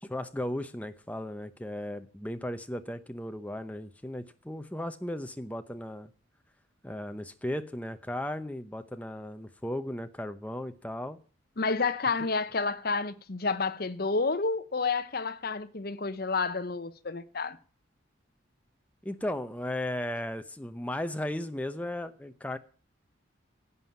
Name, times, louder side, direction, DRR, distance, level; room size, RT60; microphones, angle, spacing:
voice 1, 0.0-6.1 6.8-11.2 19.0-22.6, left 1 dB, 5° left, 0.8 m, -36 dB
voice 2, 11.6-17.6, left 4 dB, 50° left, 0.8 m, -30 dB
11.0 x 7.7 x 8.6 m
head